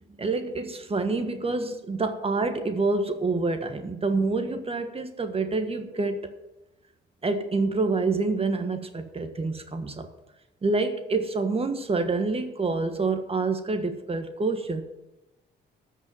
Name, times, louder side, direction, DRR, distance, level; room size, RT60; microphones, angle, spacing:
voice 1, 0.1-6.3 7.2-10.1 10.6-14.8, right 3 dB, 30° right, 7 dB, 1.5 m, -27 dB
13.5 x 5.5 x 9.2 m, 0.99 s
cardioid pair, 90°, 20 cm